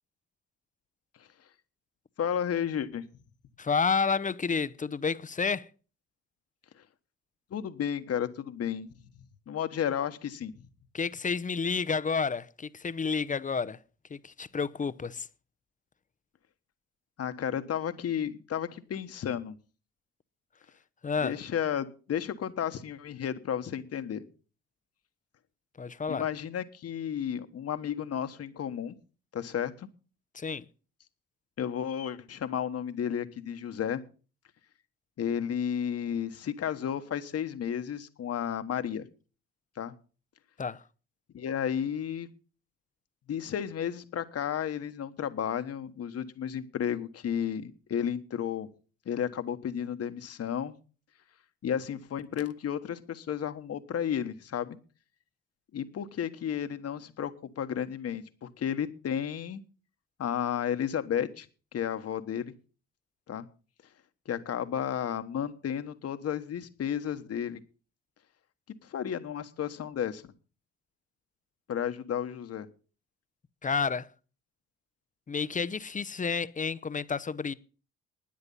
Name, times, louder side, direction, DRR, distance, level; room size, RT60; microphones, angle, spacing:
voice 1, 2.2-3.0 7.5-8.9 9.5-10.5 17.2-19.6 21.2-24.2 26.1-28.9 29.3-29.9 31.6-34.0 35.2-39.1 39.8-39.9 41.3-42.3 43.3-48.7 49.1-50.7 51.6-54.8 55.7-59.6 60.2-61.5 61.7-62.5 63.3-63.5 64.3-67.6 68.8-70.2 71.7-72.7, left 9 dB, 55° left, 1.3 m, -32 dB
voice 2, 3.6-5.7 10.9-13.8 14.1-15.3 21.0-21.4 25.8-26.3 30.3-30.6 40.6-40.8 73.6-74.1 75.3-77.5, left 5 dB, 25° left, 0.8 m, -30 dB
13.0 x 9.7 x 5.5 m
supercardioid pair, 70°, 29 cm